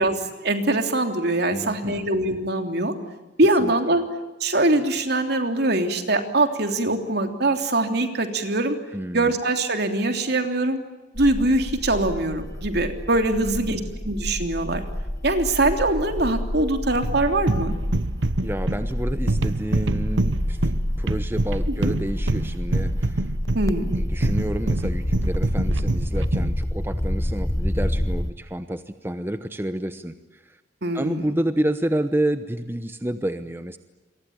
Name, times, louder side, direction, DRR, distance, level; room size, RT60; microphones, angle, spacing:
voice 1, 0.0-2.9 3.4-4.0 4.4-8.8 9.1-10.8 11.1-13.8 14.0-14.8 15.2-17.7 21.7-21.9 23.5-24.0 30.8-31.3, right 2 dB, 60° right, 6 dB, 3.3 m, -23 dB
voice 2, 1.5-2.1 3.6-3.7 8.9-9.3 13.3-13.9 18.4-23.2 24.0-30.1 30.5-30.6 30.9-33.8, right 1 dB, 10° right, 10 dB, 1.0 m, -29 dB
sound 1, 11.2-28.3, left 1 dB, 15° left, 0.9 m, -28 dB
sound 2, 17.0-26.6, right 2 dB, 90° right, 0.9 m, -26 dB
28.5 x 23.0 x 8.8 m, 1.1 s
head